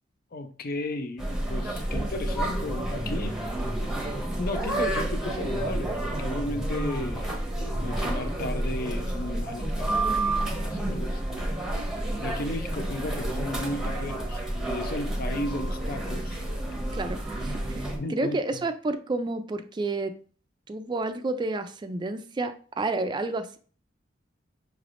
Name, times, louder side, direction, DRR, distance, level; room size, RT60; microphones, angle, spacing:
voice 1, 0.3-3.5 4.4-7.3 7.8-10.1 10.4-11.2 12.2-16.4 18.0-18.4, left 2 dB, 50° left, 0.5 m, -34 dB
sound 1, 1.2-18.0, right 1 dB, 5° right, 0.8 m, -30 dB
voice 2, 16.9-20.2 20.7-23.6, right 2 dB, 25° right, 0.3 m, -30 dB
5.5 x 3.3 x 2.5 m
head